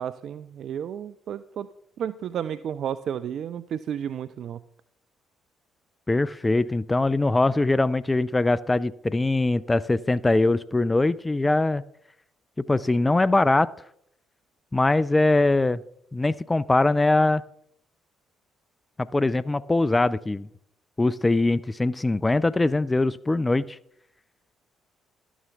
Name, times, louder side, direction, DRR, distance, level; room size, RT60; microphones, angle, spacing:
voice 1, 0.0-1.7 2.0-4.6, right 9 dB, 55° right, 14 dB, 0.3 m, -32 dB
voice 2, 6.1-11.8 12.6-13.7 14.7-15.8 16.1-17.4 19.0-20.5 21.0-23.8, left 2 dB, 20° left, 17 dB, 0.4 m, -22 dB
12.5 x 11.0 x 3.5 m, 0.72 s
hypercardioid pair, 45°, 0 cm